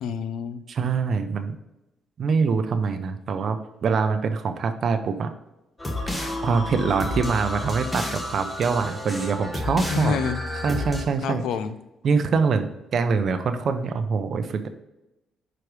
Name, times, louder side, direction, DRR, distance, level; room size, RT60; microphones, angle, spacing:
voice 1, 0.0-0.6 9.9-10.4 11.2-11.7, left 6 dB, 85° left, 11 dB, 0.5 m, -27 dB
voice 2, 0.7-1.6 2.2-5.3 6.1-10.2 10.6-11.4 12.0-14.7, right 5 dB, 55° right, 8 dB, 0.5 m, -24 dB
sound 1, 5.8-11.0, left 1 dB, 15° left, 1.5 m, -30 dB
4.9 x 4.8 x 4.7 m, 0.95 s
cardioid pair, 90°, 0 cm